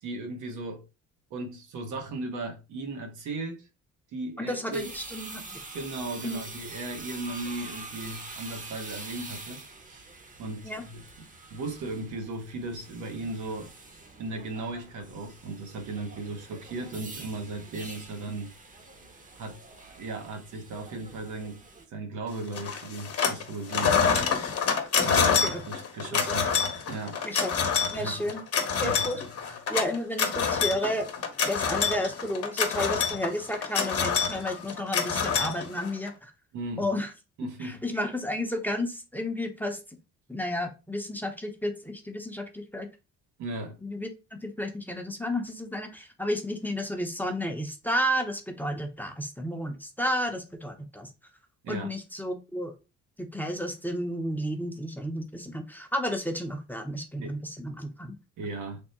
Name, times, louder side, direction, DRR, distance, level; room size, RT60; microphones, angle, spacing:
voice 1, 0.0-0.9 1.3-3.7 4.1-4.9 5.7-10.1 10.4-11.0 11.5-13.7 14.2-18.5 19.4-19.6 19.9-21.6 21.9-24.0 25.0-26.5 26.9-27.2 27.9-28.3 28.7-29.0 36.5-36.9 37.4-37.8 43.4-43.8 51.6-51.9 57.2-57.3 58.4-58.8, right 2 dB, 80° right, 0.9 m, -36 dB
voice 2, 4.4-5.4 6.2-6.4 10.6-10.8 25.4-25.6 26.1-26.3 27.2-27.5 27.9-29.2 29.7-31.1 31.5-36.3 36.8-37.1 37.6-39.8 40.3-42.9 43.8-51.1 51.7-52.7 53.2-58.2, equal, 5° left, 0.6 m, -32 dB
sound 1, 4.7-21.9, right 3 dB, 25° right, 0.8 m, -45 dB
sound 2, 22.6-23.4 23.7-36.1, left 6 dB, 50° left, 0.9 m, -27 dB
3.5 x 2.0 x 4.0 m
cardioid pair, 90°, 30 cm